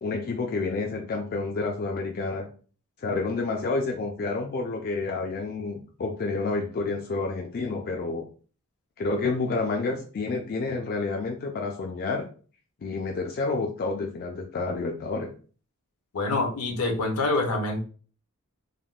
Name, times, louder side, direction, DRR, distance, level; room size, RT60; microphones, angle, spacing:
voice 1, 0.0-2.5 3.0-8.2 9.0-12.3 12.8-15.3, left 3 dB, 45° left, 1 dB, 0.4 m, -29 dB
voice 2, 16.1-17.8, left 2 dB, 75° left, 3 dB, 0.7 m, -26 dB
3.4 x 2.1 x 2.3 m, 0.39 s
head